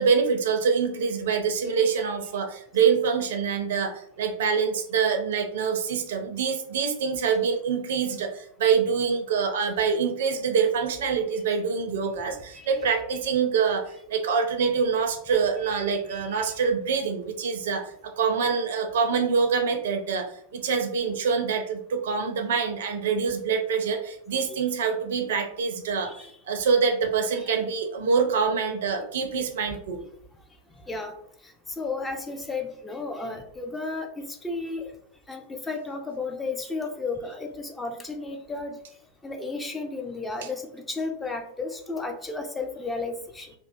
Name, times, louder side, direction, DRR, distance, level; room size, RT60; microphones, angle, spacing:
voice 1, 0.0-26.1 26.5-30.0, right 6 dB, 60° right, 5 dB, 0.4 m, -25 dB
voice 2, 16.1-16.4 26.0-26.3 27.4-27.5 30.9-31.1 31.8-34.9 35.3-38.8 39.2-43.5, left 3 dB, 10° left, 3 dB, 0.3 m, -33 dB
2.4 x 2.2 x 2.5 m, 0.67 s
figure-of-eight pair, 90°, 0 cm